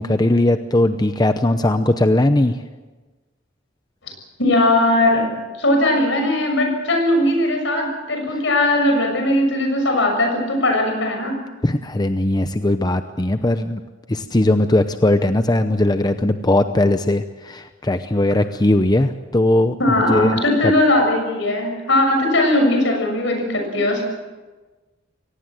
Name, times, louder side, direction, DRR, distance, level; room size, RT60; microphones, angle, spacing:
voice 1, 0.0-2.6 11.6-13.8 14.1-19.8 20.1-20.3, left 1 dB, 20° left, 9 dB, 0.7 m, -18 dB
voice 2, 4.4-11.4 19.8-24.0, left 1 dB, 70° left, 4 dB, 6.9 m, -19 dB
23.0 x 18.5 x 7.6 m, 1.2 s
head